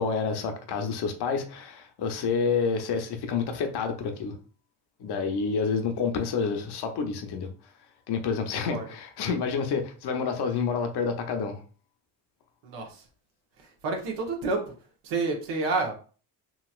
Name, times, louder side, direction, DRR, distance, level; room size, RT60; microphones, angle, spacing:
voice 1, 0.0-4.3 5.0-7.5 8.1-11.6, left 5 dB, 60° left, 0.7 m, -28 dB
voice 2, 12.6-13.0 13.8-14.7 15.0-15.9, right 3 dB, 75° right, 1.0 m, -29 dB
3.0 x 2.8 x 2.4 m
supercardioid pair, 70°, 44 cm